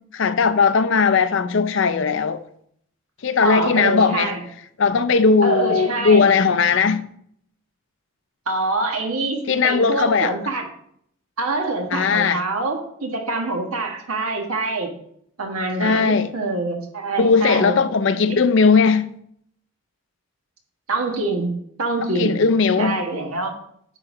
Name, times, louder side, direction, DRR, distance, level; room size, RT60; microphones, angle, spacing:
voice 1, 0.1-2.4 3.2-4.3 4.8-7.1 9.5-10.3 11.9-12.4 15.8-16.3 17.2-19.1 22.1-23.0, left 5 dB, 60° left, 0.5 m, -18 dB
voice 2, 3.4-4.4 5.4-6.3 8.5-10.6 11.4-14.9 15.4-17.8 18.3-18.4 20.9-22.3 22.8-23.6, right 2 dB, 90° right, 1.5 m, -25 dB
10.0 x 4.0 x 3.9 m
head